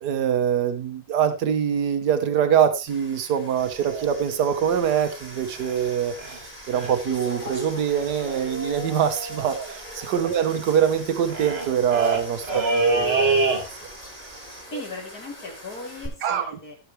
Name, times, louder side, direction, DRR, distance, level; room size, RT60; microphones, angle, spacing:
voice 1, 0.0-13.5 16.2-16.5, right 8 dB, 85° right, 8 dB, 1.6 m, -24 dB
sound 1, 2.9-16.1, left 1 dB, 20° left, 4.4 m, -42 dB
sound 2, 3.6-5.9 6.2-6.4 6.7-7.2 7.4-7.5 7.7-14.1 14.3-14.6, right 3 dB, 40° right, 1.8 m, -28 dB
voice 2, 14.7-16.8, left 3 dB, 65° left, 2 dB, 3.4 m, -38 dB
18.0 x 6.7 x 3.1 m, 0.27 s
omnidirectional pair, 1.7 m